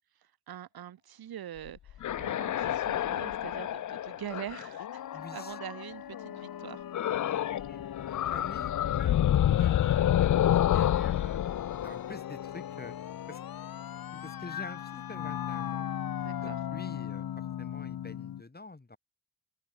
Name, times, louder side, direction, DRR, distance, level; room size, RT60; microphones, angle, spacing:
voice 1, 0.0-6.8 16.2-16.6, right 11 dB, 85° right, 2.4 m, -44 dB
sound 1, 1.7-5.8 6.9-7.7 8.0-12.8, left 11 dB, 55° left, 0.6 m, -28 dB
sound 2, 4.8-18.4, left 10 dB, 75° left, 1.8 m, -39 dB
voice 2, 5.1-5.6 7.1-9.2 9.5-11.4 11.8-12.9 13.3-13.4 14.1-15.9 16.2-19.0, left 3 dB, 25° left, 6.2 m, -47 dB
open air
cardioid pair, 60°, 36 cm